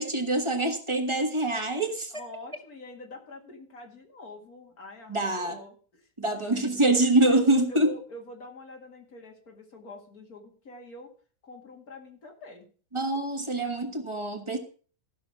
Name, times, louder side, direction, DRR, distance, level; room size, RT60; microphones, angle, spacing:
voice 1, 0.0-2.2 5.1-5.6 6.2-7.9 12.9-14.6, right 2 dB, 20° right, 6 dB, 1.5 m, -25 dB
voice 2, 2.1-6.1 6.5-6.7 7.3-11.1 11.4-12.7 13.0-13.3, left 2 dB, 80° left, 1 dB, 2.6 m, -45 dB
14.5 x 6.2 x 5.9 m, 0.40 s
omnidirectional pair, 1.5 m